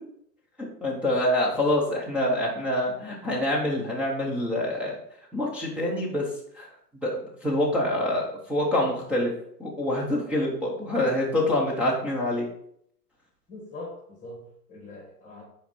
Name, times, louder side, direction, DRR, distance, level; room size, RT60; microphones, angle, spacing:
voice 1, 0.8-5.0 5.3-6.2 6.5-6.7 7.0-9.3 9.6-12.5, left 1 dB, 5° right, -6 dB, 0.5 m, -26 dB
voice 2, 13.5-15.4, left 2 dB, 15° left, -5 dB, 2.1 m, -42 dB
5.8 x 4.5 x 4.1 m, 0.68 s
hypercardioid pair, 120°, 48 cm